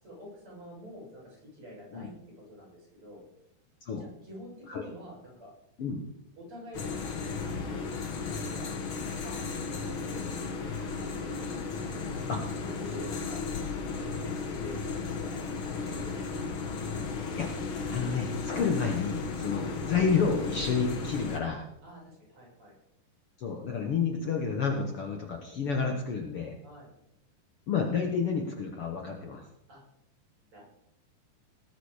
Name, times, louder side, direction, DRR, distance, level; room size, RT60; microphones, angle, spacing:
voice 1, 0.0-3.2 4.0-5.5 6.4-6.9 7.5-10.3 11.0-12.3 12.6-13.5 13.9-14.8 15.2-16.9 21.8-22.7 26.6-26.9 29.7-29.8 30.4-30.6, left 1 dB, 30° right, -3 dB, 7.4 m, -47 dB
sound 1, 6.7-21.4, left 4 dB, 55° left, 1.4 m, -35 dB
voice 2, 17.9-21.6 23.4-26.5 27.7-29.5, left 5 dB, 85° left, 2 dB, 1.2 m, -30 dB
19.0 x 10.0 x 5.0 m, 0.80 s
omnidirectional pair, 4.7 m